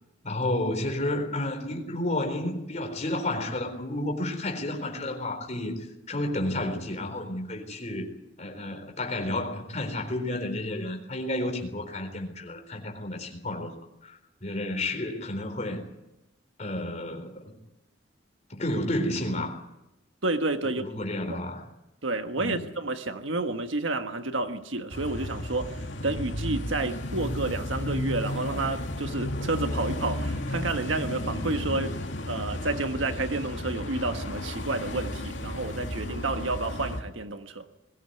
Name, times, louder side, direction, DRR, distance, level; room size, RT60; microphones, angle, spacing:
voice 1, 0.2-5.8 6.1-8.1 8.4-13.7 14.0-15.8 16.6-17.6 18.5-19.6 20.6-21.6 22.4-22.6, left 1 dB, 35° left, 4 dB, 4.1 m, -31 dB
voice 2, 20.2-20.8 21.3-21.4 22.0-37.7, right 2 dB, 90° right, 7 dB, 1.4 m, -30 dB
sound 1, 24.9-37.0, left 1 dB, 75° left, 3.0 m, -33 dB
21.5 x 17.0 x 9.4 m, 0.92 s
head